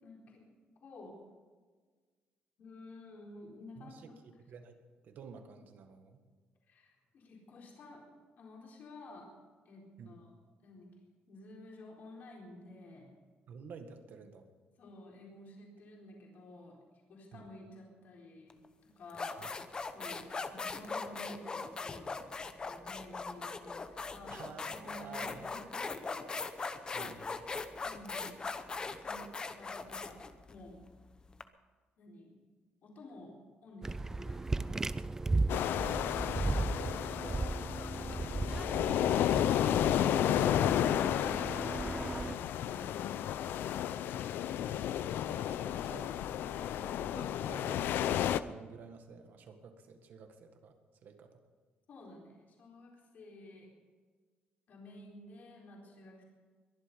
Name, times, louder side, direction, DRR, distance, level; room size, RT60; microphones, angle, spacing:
voice 1, 0.0-0.4 0.8-1.1 2.6-4.1 6.7-8.1 8.4-9.3 9.6-10.3 10.6-10.9 11.3-13.1 14.8-16.8 17.1-18.6 19.0-19.5 19.9-20.2 20.5-24.3 24.6-26.3 26.5-28.3 29.0-29.3 29.5-30.2 30.5-30.7 32.0-32.3 32.8-33.3 33.6-34.9 51.9-53.7 54.7-56.2, left 2 dB, 55° left, -2 dB, 4.2 m, -52 dB
voice 2, 3.8-4.8 5.0-6.2 10.0-10.2 13.5-14.5 17.3-17.6 19.4-19.5 24.3-25.5 26.9-27.3 35.8-38.1 44.3-44.4 45.3-46.2 46.5-50.8 51.0-51.4, right 5 dB, 60° right, 6 dB, 1.8 m, -51 dB
sound 1, 18.5-18.7 19.1-31.4, left 4 dB, 25° left, 0.8 m, -40 dB
sound 2, 33.8-42.4, right 3 dB, 15° right, 0.4 m, -36 dB
sound 3, 35.5-48.4, left 10 dB, 80° left, 0.5 m, -32 dB
22.0 x 11.0 x 5.4 m, 1.5 s
cardioid pair, 150°, 4 cm